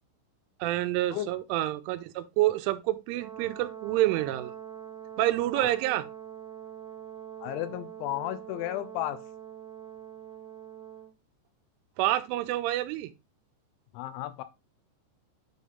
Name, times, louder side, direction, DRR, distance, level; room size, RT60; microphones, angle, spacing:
voice 1, 0.6-4.5 5.2-6.1 12.0-13.1, right 15 dB, 90° right, 3.1 m, -28 dB
Brass instrument, 3.1-11.1, right 9 dB, 50° right, 2.7 m, -44 dB
voice 2, 7.4-9.2 13.9-14.4, left 14 dB, 80° left, 2.9 m, -33 dB
9.3 x 4.0 x 3.5 m
omnidirectional pair, 5.6 m